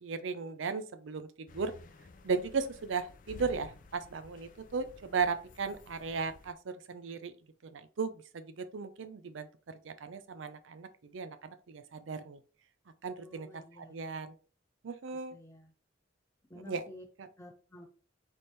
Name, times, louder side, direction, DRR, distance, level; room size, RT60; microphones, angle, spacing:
voice 1, 0.0-1.7 2.2-7.3 7.7-12.4 13.0-14.3 14.8-15.4 16.7-16.8 17.2-17.3, right 5 dB, 85° right, 11 dB, 0.5 m, -36 dB
sound 1, 1.5-6.5, left 3 dB, 45° left, 0.4 m, -53 dB
voice 2, 13.1-14.0 15.3-15.7 16.5-17.0 17.4-17.8, left 1 dB, 15° left, 0 dB, 1.3 m, -52 dB
4.3 x 3.4 x 3.2 m, 0.37 s
head